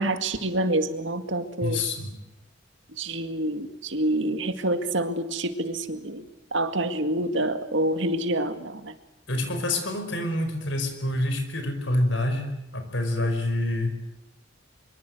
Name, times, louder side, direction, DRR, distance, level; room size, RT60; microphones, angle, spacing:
voice 1, 0.0-1.8 3.0-6.2 6.5-8.9, right 1 dB, 65° right, 8 dB, 2.2 m, -27 dB
voice 2, 1.6-2.1 9.3-14.0, left 1 dB, 70° left, 7 dB, 5.1 m, -27 dB
24.5 x 23.5 x 7.9 m, 0.89 s
head